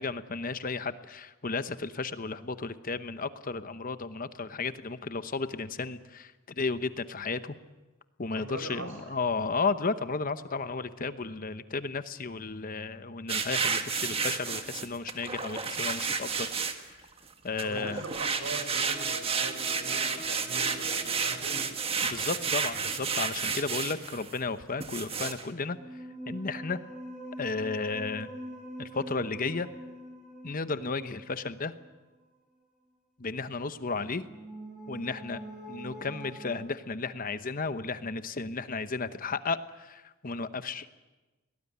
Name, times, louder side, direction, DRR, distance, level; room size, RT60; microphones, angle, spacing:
voice 1, 0.0-7.6 8.2-16.5 17.4-18.1 22.0-25.8 26.3-26.8 27.4-28.3 28.8-29.7 30.4-31.7 33.2-34.3 34.9-35.4 35.7-40.9, left 4 dB, 45° left, 12 dB, 0.9 m, -33 dB
voice 2, 8.4-9.0 17.6-21.7, right 2 dB, 75° right, 6 dB, 5.7 m, -41 dB
sound 1, 13.3-17.1 17.6-24.4 24.8-25.4, right 5 dB, 30° right, 1.5 m, -31 dB
sound 2, 18.9-23.7 25.6-32.0 34.1-36.5, right 1 dB, 5° right, 5.1 m, -45 dB
22.5 x 18.5 x 9.5 m, 1.2 s
head